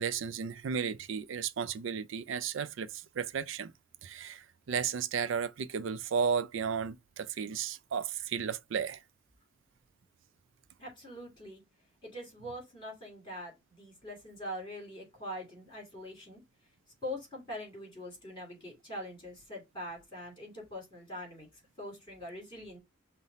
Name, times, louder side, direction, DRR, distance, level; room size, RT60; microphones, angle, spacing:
voice 1, 0.0-3.7 4.0-9.0, right 6 dB, 65° right, 0.4 m, -34 dB
voice 2, 10.8-11.6 12.0-16.4 17.0-22.8, left 1 dB, 25° left, 2.7 m, -43 dB
5.6 x 2.1 x 4.0 m
head